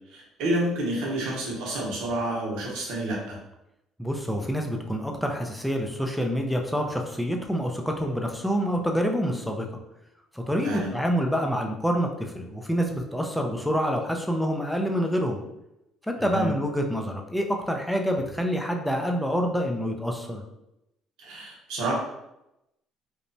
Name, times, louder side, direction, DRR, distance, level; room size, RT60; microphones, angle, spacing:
voice 1, 0.1-3.4 10.6-10.9 16.3-16.5 21.2-21.9, right 1 dB, 85° right, -3 dB, 0.9 m, -29 dB
voice 2, 4.0-9.7 10.3-15.4 16.0-20.4, equal, ahead, 2 dB, 0.4 m, -27 dB
3.0 x 2.1 x 2.6 m, 0.88 s
cardioid pair, 115°, 0 cm